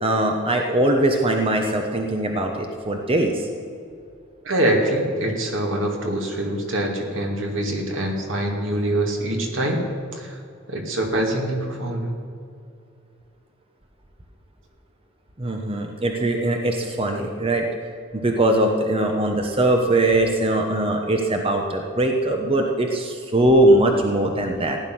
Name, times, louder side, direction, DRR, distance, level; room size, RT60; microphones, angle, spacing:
voice 1, 0.0-3.5 15.4-17.7 18.1-24.8, right 1 dB, 30° right, 3 dB, 1.0 m, -21 dB
voice 2, 4.4-9.8 10.1-10.4 10.7-12.1, right 1 dB, 75° right, 1 dB, 2.3 m, -24 dB
15.5 x 10.5 x 6.2 m, 2.4 s
head